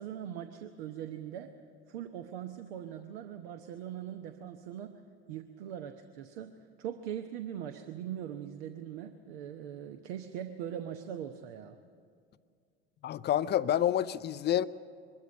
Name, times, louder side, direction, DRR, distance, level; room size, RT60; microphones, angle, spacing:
voice 1, 0.0-1.5 1.9-5.0 5.3-11.8, right 10 dB, 65° right, 7 dB, 1.0 m, -41 dB
voice 2, 13.0-14.6, left 11 dB, 35° left, 15 dB, 0.5 m, -28 dB
22.5 x 13.0 x 9.6 m, 2.2 s
hypercardioid pair, 75°, 32 cm